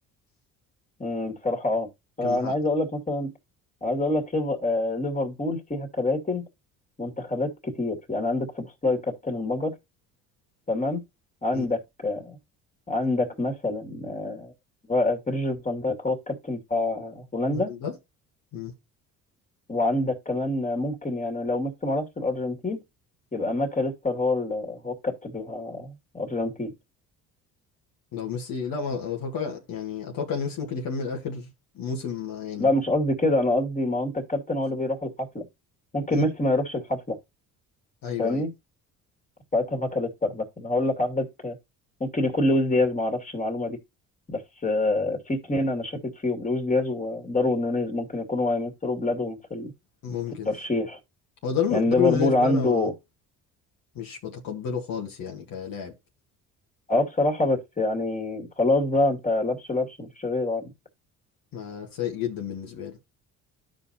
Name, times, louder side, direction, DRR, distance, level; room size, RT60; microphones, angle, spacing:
voice 1, 1.0-1.9 2.2-3.3 3.8-6.4 7.0-9.7 10.7-11.0 11.4-12.4 12.9-14.5 14.9-17.7 19.7-22.8 23.3-26.7 32.6-35.4 35.9-37.2 38.2-38.5 39.5-41.6 42.0-43.8 44.3-49.7 50.5-51.0 51.7-52.9 56.9-60.7, left 2 dB, 20° left, 2.4 m, -26 dB
voice 2, 2.2-2.5 11.5-11.7 17.5-17.9 18.5-18.7 28.1-31.5 31.8-32.7 36.1-36.2 38.0-38.5 50.0-50.5 51.4-52.9 54.0-55.9 61.5-63.0, left 7 dB, 65° left, 1.9 m, -30 dB
13.0 x 5.2 x 2.8 m
supercardioid pair, 65°, 37 cm